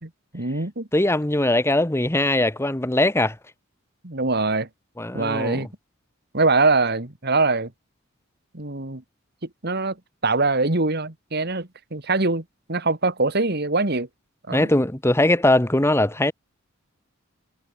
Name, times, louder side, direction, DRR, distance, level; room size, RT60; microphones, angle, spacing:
voice 1, 0.0-0.9 4.0-4.7 5.1-5.7 6.3-7.7 8.5-9.0 9.6-9.9 10.2-12.4 12.7-14.1 14.5-14.7, right 3 dB, 50° right, 2.2 m, -23 dB
voice 2, 0.9-3.3 5.0-5.6 14.5-16.3, left 1 dB, 10° left, 1.1 m, -20 dB
head